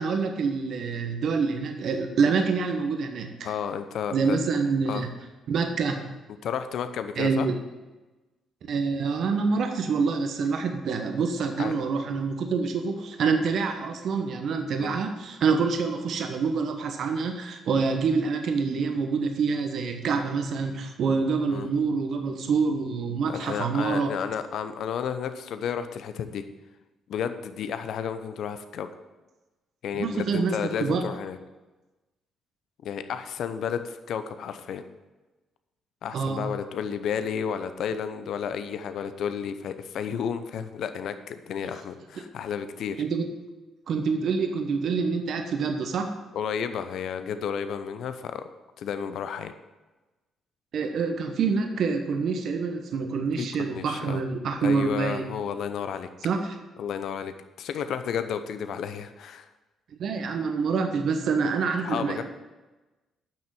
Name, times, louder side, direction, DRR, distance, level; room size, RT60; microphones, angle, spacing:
voice 1, 0.0-3.5 4.1-5.1 5.5-6.1 7.2-7.6 8.7-24.1 29.9-31.0 36.1-36.4 43.0-43.3 43.9-46.1 50.7-55.3 56.2-56.4 60.0-62.2, right 5 dB, 65° right, 5 dB, 1.1 m, -26 dB
voice 2, 3.4-4.4 4.9-5.0 6.4-7.5 11.6-11.8 14.8-15.0 21.5-21.7 23.3-26.4 27.1-28.9 29.8-31.4 32.8-34.8 36.0-43.0 46.3-48.4 48.8-49.5 53.4-54.2 54.6-56.1 56.8-59.5 61.8-62.2, left 7 dB, 65° left, 10 dB, 0.7 m, -32 dB
8.9 x 6.1 x 7.5 m, 1.1 s
hypercardioid pair, 50°, 0 cm